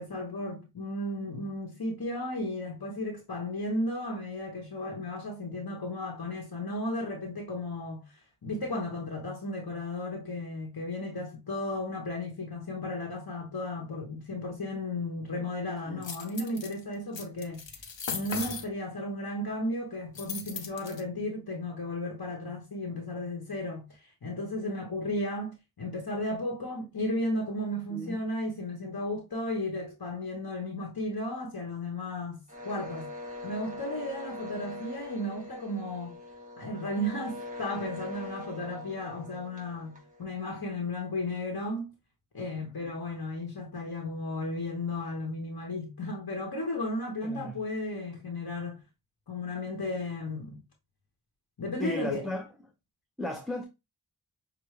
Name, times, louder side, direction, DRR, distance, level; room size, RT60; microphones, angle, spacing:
voice 1, 0.0-17.6 18.1-33.1 33.4-36.2 36.6-41.9 42.3-48.8 49.3-50.6 51.6-52.3, left 1 dB, 55° left, 1.2 m, -34 dB
sound 1, 16.0-16.7 17.1-18.6 20.2-21.0, left 5 dB, 90° left, 0.9 m, -37 dB
sound 2, 32.5-40.2, left 2 dB, 20° right, 1.9 m, -42 dB
voice 2, 47.2-47.6 51.8-52.4 53.2-53.6, left 1 dB, ahead, 0.7 m, -35 dB
6.5 x 2.3 x 3.2 m
wide cardioid pair, 65°, 43 cm